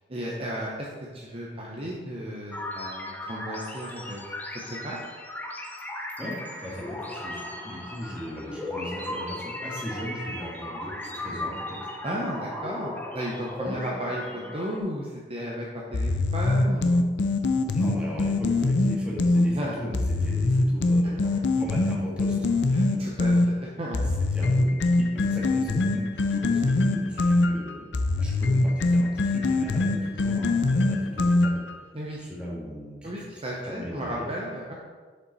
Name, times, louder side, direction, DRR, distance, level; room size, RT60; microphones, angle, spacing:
voice 1, 0.1-0.9 1.1-5.0 12.0-17.1 19.5-19.8 21.0-21.1 22.7-24.1 31.9-32.2 33.0-34.7, equal, 35° right, -3 dB, 0.9 m, -34 dB
sound 1, 2.5-14.8, left 1 dB, 10° left, 0.6 m, -36 dB
voice 2, 6.2-11.8 17.7-23.2 24.3-27.9 28.2-31.6 32.2-33.4 33.8-34.3, equal, 5° right, -5 dB, 1.7 m, -38 dB
sound 2, 15.9-19.5 19.9-23.5 23.9-31.7, left 2 dB, 85° left, 0.6 m, -23 dB
6.9 x 5.5 x 4.1 m, 1.5 s
head